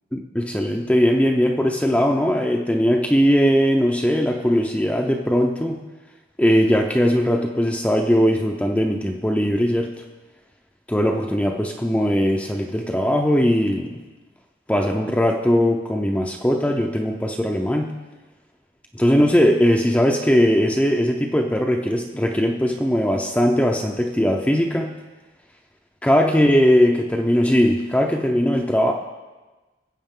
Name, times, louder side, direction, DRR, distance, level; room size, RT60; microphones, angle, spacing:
voice 1, 0.1-5.8 6.4-10.0 10.9-14.0 14.7-17.9 19.0-24.9 26.0-28.9, equal, 5° left, 1 dB, 0.6 m, -19 dB
19.0 x 7.9 x 3.7 m, 1.2 s
head